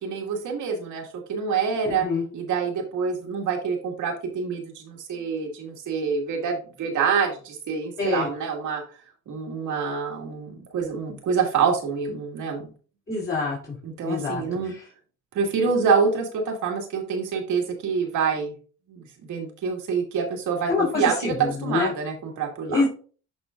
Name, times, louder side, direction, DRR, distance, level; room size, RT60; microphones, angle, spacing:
voice 1, 0.0-2.1 2.3-8.8 9.3-12.7 13.8-14.7 15.3-18.5 18.9-22.8, right 6 dB, 80° right, 1 dB, 2.1 m, -26 dB
voice 2, 1.8-2.2 8.0-8.3 13.1-13.8 14.0-14.8 20.7-21.9 22.7-22.9, left 4 dB, 35° left, -6 dB, 3.3 m, -26 dB
11.5 x 4.4 x 2.5 m, 0.39 s
cardioid pair, 90°, 30 cm